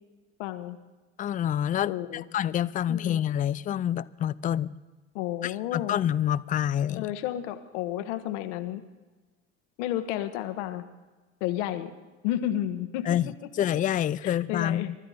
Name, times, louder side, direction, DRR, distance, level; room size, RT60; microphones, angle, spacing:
voice 1, 0.4-0.8 1.9-2.2 2.9-3.2 5.1-6.0 7.0-8.8 9.8-10.8 11.4-11.9 12.2-13.5 14.2-14.9, left 12 dB, 65° left, 1.2 m, -32 dB
voice 2, 1.2-2.0 2.3-4.7 5.4-7.1 13.1-13.3 13.6-15.0, left 10 dB, 20° left, 0.4 m, -27 dB
24.5 x 12.5 x 4.1 m
hypercardioid pair, 65°, 38 cm